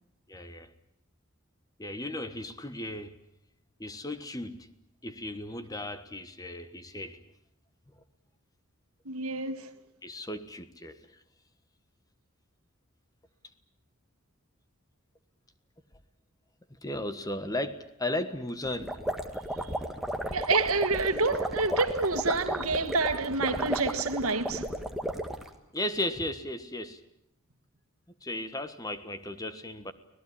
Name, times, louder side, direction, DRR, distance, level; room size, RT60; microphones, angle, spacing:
voice 1, 0.3-0.7 1.8-3.1 3.8-4.7 5.0-7.2 10.0-11.1 16.8-18.9 25.7-27.0 28.2-29.9, left 1 dB, 15° left, 1.3 m, -35 dB
voice 2, 9.0-9.8 19.6-19.7 20.3-24.7, right 3 dB, 90° right, 1.7 m, -28 dB
sound 1, 18.7-25.5, equal, ahead, 1.7 m, -33 dB
25.0 x 18.0 x 10.0 m
head